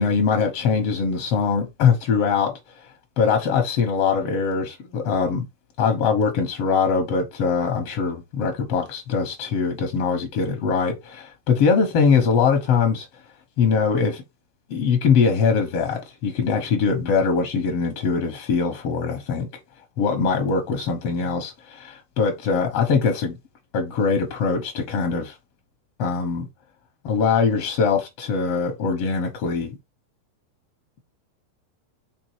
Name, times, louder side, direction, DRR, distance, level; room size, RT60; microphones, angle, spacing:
voice 1, 0.0-2.6 3.2-5.4 5.8-13.1 13.6-14.2 14.7-19.5 20.0-23.4 23.7-25.4 26.0-26.5 27.0-29.8, left 5 dB, 65° left, 1.5 m, -22 dB
6.0 x 3.7 x 4.6 m
omnidirectional pair, 4.3 m